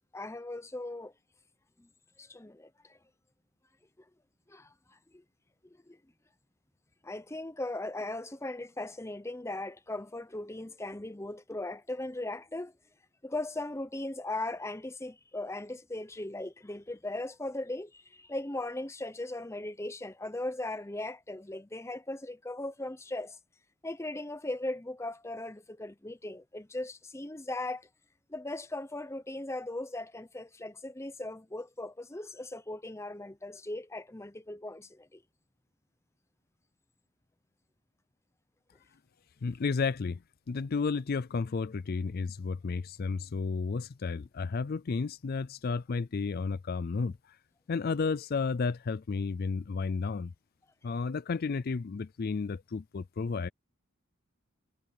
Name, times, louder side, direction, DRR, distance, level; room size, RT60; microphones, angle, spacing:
voice 1, 0.1-1.1 1.8-1.9 2.2-3.0 4.5-5.2 5.6-6.0 7.0-12.7 13.2-23.4 23.8-27.9 28.3-35.2, left 2 dB, 15° left, 0.7 m, -38 dB
voice 2, 39.4-40.2 40.5-47.4 47.7-50.3 50.8-53.5, left 4 dB, 45° left, 0.4 m, -32 dB
head